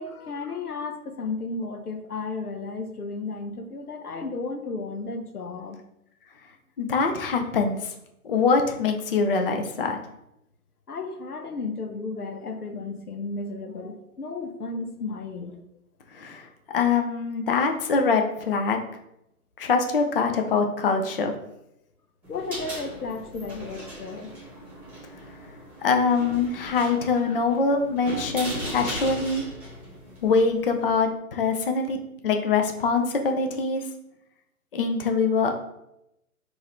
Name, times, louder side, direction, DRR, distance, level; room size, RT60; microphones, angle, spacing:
voice 1, 0.0-5.8 10.9-15.6 22.3-24.4 27.3-27.4, left 3 dB, 85° left, 7 dB, 0.7 m, -34 dB
voice 2, 6.8-7.8 8.2-10.0 16.1-16.5 16.7-18.8 19.6-21.3 25.8-29.4 30.2-32.0 32.2-33.8 34.7-35.5, left 4 dB, 40° left, 4 dB, 0.5 m, -23 dB
sound 1, 22.2-31.0, equal, 5° right, 1.2 m, -38 dB
3.9 x 2.6 x 4.2 m, 0.82 s
figure-of-eight pair, 135°, 44 cm